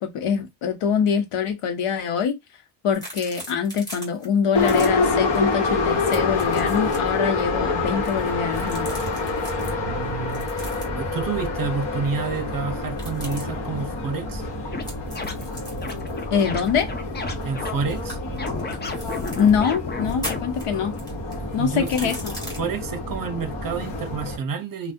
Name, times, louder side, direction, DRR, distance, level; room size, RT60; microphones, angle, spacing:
voice 1, 0.0-2.4 2.8-9.1 16.3-16.9 19.4-20.9 21.5-22.3, left 7 dB, 85° left, 0.9 m, -24 dB
sound 1, 2.9-4.3 4.6-4.9 5.3-5.5 5.8-7.1 7.9-9.7 10.3-11.1 12.9-13.4 14.9-17.6 17.9-19.5 20.0-22.6, equal, 10° left, 1.4 m, -39 dB
Subway metro underground, 4.5-24.4, left 3 dB, 55° left, 1.2 m, -27 dB
voice 2, 9.6-10.7 11.0-14.4 17.4-18.2 21.3-22.1 22.6-24.9, right 5 dB, 45° right, 0.6 m, -29 dB
sound 2, 14.7-14.8 15.2-15.5 15.8-17.7 18.4-20.4, left 4 dB, 25° left, 0.3 m, -32 dB
2.6 x 2.3 x 3.5 m
wide cardioid pair, 175°, 50 cm